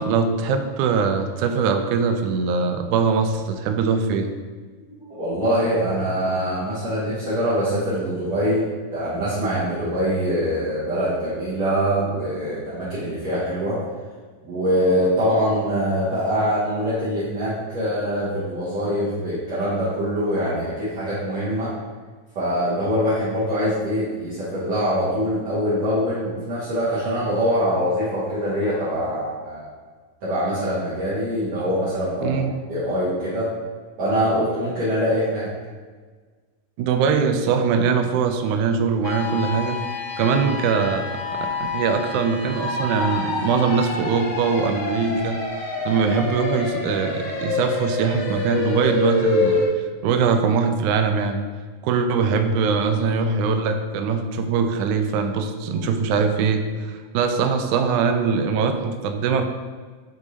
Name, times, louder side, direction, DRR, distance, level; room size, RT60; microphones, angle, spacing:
voice 1, 0.0-4.3 32.2-32.5 36.8-39.8 40.2-41.1 41.7-45.4 45.9-49.6 50.0-51.4 51.8-59.4, right 5 dB, 90° right, 6 dB, 1.7 m, -22 dB
voice 2, 4.9-8.7 8.9-13.8 14.5-21.7 22.4-29.7 30.2-32.4 32.7-33.5 34.0-35.5, equal, 55° right, -11 dB, 2.2 m, -23 dB
sound 1, 39.0-49.7, left 3 dB, 60° left, 1.9 m, -27 dB
6.5 x 3.5 x 4.1 m, 1.4 s
omnidirectional pair, 4.0 m